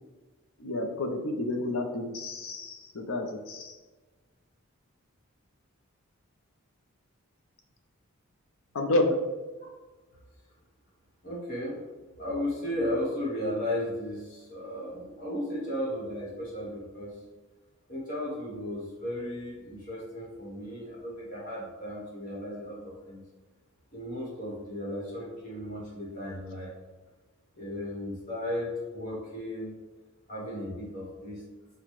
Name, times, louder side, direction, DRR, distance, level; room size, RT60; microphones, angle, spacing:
voice 1, 0.6-3.8 8.7-9.1, left 2 dB, 70° left, 4 dB, 0.6 m, -30 dB
voice 2, 11.2-11.8 12.2-17.2 17.9-23.2 23.9-26.7 27.5-29.7 30.3-31.4, left 1 dB, 40° left, -5 dB, 1.0 m, -35 dB
5.8 x 2.2 x 3.1 m, 1.3 s
head